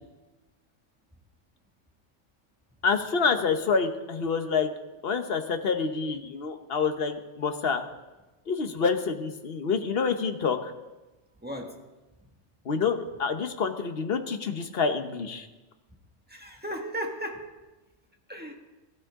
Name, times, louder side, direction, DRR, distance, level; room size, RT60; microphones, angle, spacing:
voice 1, 2.8-4.7 5.0-7.8 8.5-10.7 12.6-15.5, left 5 dB, 55° left, 7 dB, 1.3 m, -27 dB
voice 2, 11.4-11.8 16.3-17.6 18.3-18.5, equal, 10° right, 1 dB, 1.8 m, -35 dB
21.5 x 13.0 x 3.7 m, 1.1 s
omnidirectional pair, 1.2 m